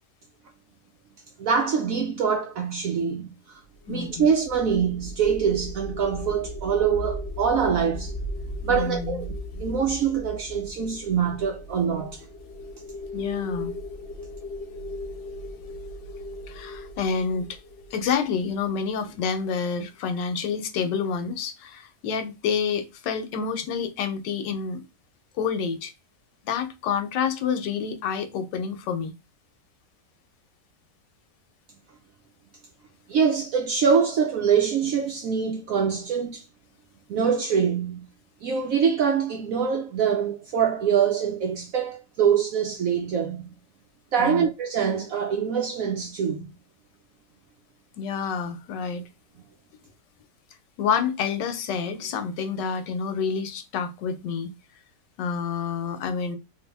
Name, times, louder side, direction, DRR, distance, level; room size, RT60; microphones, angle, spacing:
voice 1, 1.4-3.6 3.9-8.1 8.6-12.2 33.1-36.4 37.1-38.1 38.4-43.5 44.1-46.5, right 7 dB, 70° right, 0.8 m, -24 dB
sound 1, 3.7-18.9, left 1 dB, 50° left, 0.7 m, -37 dB
voice 2, 3.9-4.3 8.7-9.2 13.1-13.7 16.5-17.6 17.9-24.8 25.4-25.9 26.4-29.1 44.2-44.4 48.0-49.0 50.8-54.5 55.2-56.4, left 6 dB, 85° left, 1.3 m, -28 dB
3.2 x 2.7 x 3.3 m
omnidirectional pair, 1.9 m